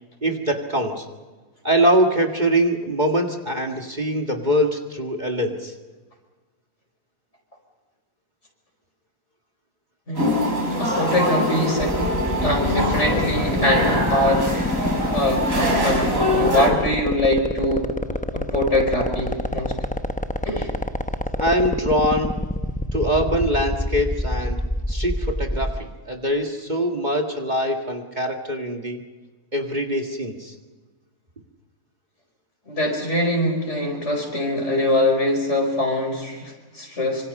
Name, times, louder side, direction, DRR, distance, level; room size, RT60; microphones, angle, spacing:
voice 1, 0.2-1.1 1.6-5.7 21.4-22.4 22.9-24.6 24.9-29.0 29.5-30.5, equal, 30° right, 2 dB, 2.0 m, -23 dB
voice 2, 10.1-10.4 10.8-12.0 12.4-17.9 18.3-19.7 20.4-20.7 32.7-37.3, left 1 dB, 50° left, 1 dB, 5.2 m, -23 dB
sound 1, 10.2-16.7, left 1 dB, 65° right, 5.5 m, -23 dB
sound 2, 11.8-25.8, left 1 dB, 10° left, 0.6 m, -26 dB
26.0 x 25.5 x 5.5 m, 1.3 s
omnidirectional pair, 1.5 m